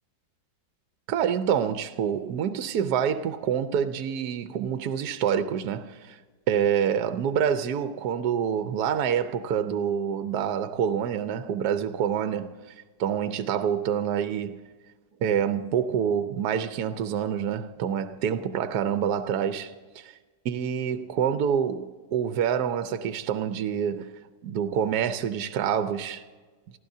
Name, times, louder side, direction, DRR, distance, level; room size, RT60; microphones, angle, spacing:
voice 1, 1.1-6.2 6.5-12.5 13.0-14.6 15.2-20.1 20.4-24.1 24.4-26.2, right 8 dB, 70° right, 1.2 m, -27 dB
28.5 x 15.0 x 2.7 m
omnidirectional pair, 1.9 m